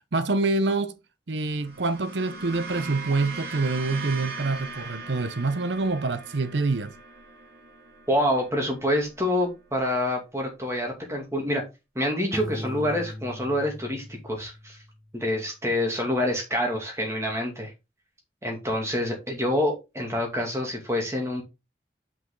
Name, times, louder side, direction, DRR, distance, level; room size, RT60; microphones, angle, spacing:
voice 1, 0.1-1.0 1.3-6.9, right 3 dB, 85° right, 0.7 m, -26 dB
sound 1, 1.5-9.9, right 4 dB, 65° right, 2.1 m, -40 dB
voice 2, 8.1-11.6 11.9-14.8 15.1-17.7 18.4-21.4, left 1 dB, 15° right, 2.3 m, -27 dB
Piano, 12.3-15.1, left 1 dB, 5° left, 0.8 m, -38 dB
6.0 x 5.6 x 3.8 m
head